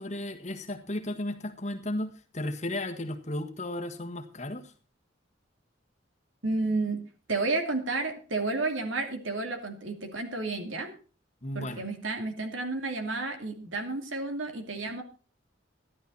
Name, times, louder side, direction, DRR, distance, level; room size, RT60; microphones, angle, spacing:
voice 1, 0.0-4.7 11.4-11.8, left 1 dB, 35° left, 5 dB, 1.6 m, -34 dB
voice 2, 6.4-7.0 7.3-10.9 11.5-15.0, right 3 dB, 80° right, 5 dB, 2.6 m, -31 dB
12.5 x 12.0 x 4.2 m, 0.37 s
head